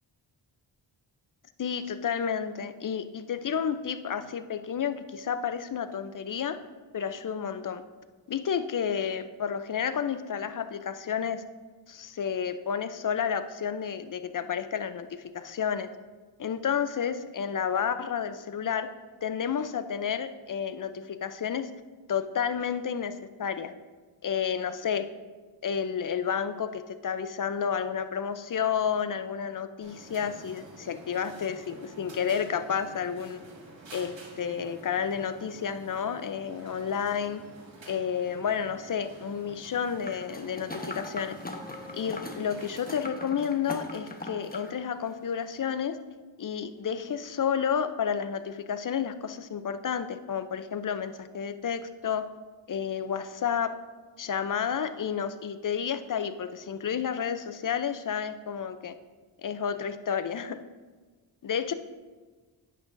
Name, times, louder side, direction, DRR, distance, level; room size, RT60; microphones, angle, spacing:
voice 1, 1.6-6.6 6.9-7.8 8.3-11.4 11.9-15.9 16.4-18.9 19.2-21.7 22.1-23.7 24.2-25.1 25.6-33.4 33.9-37.4 37.9-41.4 41.9-46.0 46.4-52.2 52.7-53.7 54.2-58.9 59.4-60.6 61.4-61.7, left 7 dB, 45° left, 11 dB, 0.6 m, -31 dB
sound 1, 29.8-43.1, right 2 dB, 70° right, 1.9 m, -49 dB
sound 2, 40.0-44.7 45.1-45.2, left 2 dB, 20° left, 1.1 m, -40 dB
10.0 x 8.7 x 2.6 m, 1.4 s
cardioid pair, 65°, 47 cm